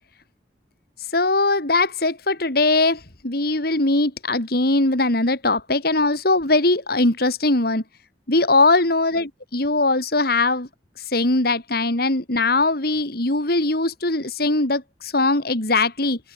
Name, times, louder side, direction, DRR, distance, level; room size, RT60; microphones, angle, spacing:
voice 1, 1.1-7.8 8.3-10.7 11.1-16.2, left 2 dB, 60° left, 3.8 m, -20 dB
head